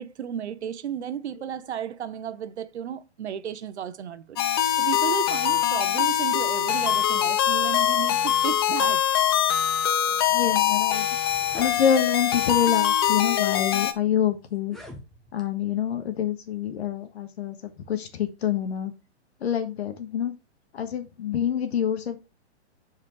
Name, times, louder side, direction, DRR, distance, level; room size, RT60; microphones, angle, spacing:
voice 1, 0.0-9.0, right 9 dB, 75° right, 0.9 m, -33 dB
sound 1, 4.4-13.9, left 10 dB, 25° left, 0.4 m, -23 dB
voice 2, 10.3-11.0 11.5-14.8 15.3-17.5 17.9-18.9 19.4-20.3 20.7-22.2, left 9 dB, 65° left, 1.5 m, -26 dB
sound 2, 11.1-11.8 12.7-12.9 13.6-13.7 14.5-15.5, equal, ahead, 0.8 m, -44 dB
8.3 x 5.0 x 3.2 m
hypercardioid pair, 145°, 34 cm